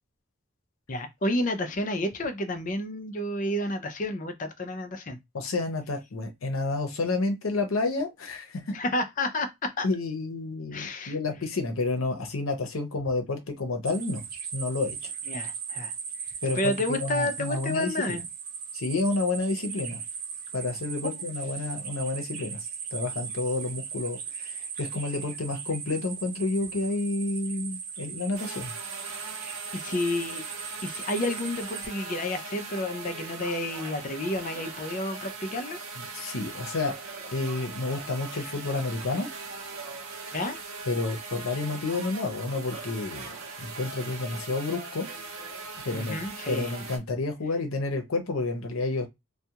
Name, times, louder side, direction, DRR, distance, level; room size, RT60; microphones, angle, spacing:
voice 1, 0.9-5.2 8.7-9.9 10.7-11.2 15.3-15.9 16.5-18.2 21.0-21.2 29.7-30.5 30.8-35.8 40.3-40.6 45.9-46.7, left 1 dB, 40° left, 0.5 m, -30 dB
voice 2, 5.3-8.7 9.8-14.2 14.5-15.1 16.4-18.2 18.7-20.0 20.5-28.7 36.0-36.9 37.3-39.3 40.9-43.3 43.6-45.1 45.8-46.2 46.5-49.1, left 3 dB, 90° left, 0.7 m, -30 dB
sound 1, 13.9-31.9, right 6 dB, 45° right, 0.7 m, -38 dB
sound 2, 28.3-47.0, right 4 dB, 90° right, 0.7 m, -40 dB
2.3 x 2.2 x 2.8 m
head